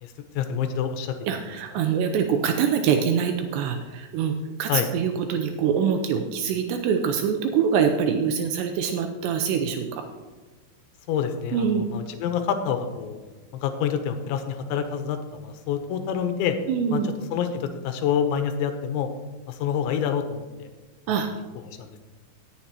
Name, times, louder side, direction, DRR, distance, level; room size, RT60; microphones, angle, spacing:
voice 1, 0.0-1.1 1.7-1.8 4.7-4.9 11.1-13.2 13.6-16.6 16.9-19.1 19.5-20.7 21.1-22.0, left 8 dB, 85° left, 7 dB, 3.1 m, -27 dB
voice 2, 1.3-4.3 4.6-10.0 11.5-11.9 16.7-17.1 21.1-21.3, right 7 dB, 85° right, 5 dB, 2.6 m, -24 dB
18.0 x 7.3 x 2.9 m, 1.3 s
omnidirectional pair, 5.4 m